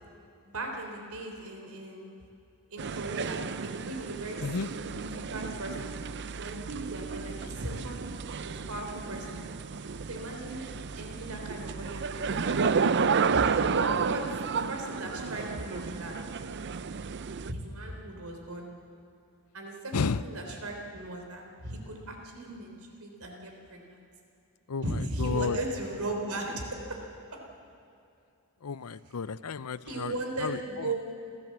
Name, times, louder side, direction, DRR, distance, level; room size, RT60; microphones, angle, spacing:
voice 1, 0.5-2.2 2.7-5.9 6.4-8.1 8.4-9.4 10.1-10.6 11.0-12.8 13.3-14.3 14.5-16.2 17.5-18.7 19.5-24.0 24.8-27.0 27.3-27.4 29.9-30.9, right 2 dB, 75° right, 2 dB, 3.8 m, -37 dB
sound 1, 2.8-17.5, right 5 dB, 50° right, 0.6 m, -32 dB
voice 2, 19.9-20.2 24.7-25.6 28.6-30.9, left 5 dB, 80° left, 17 dB, 0.6 m, -33 dB
29.0 x 14.0 x 7.6 m, 2.6 s
head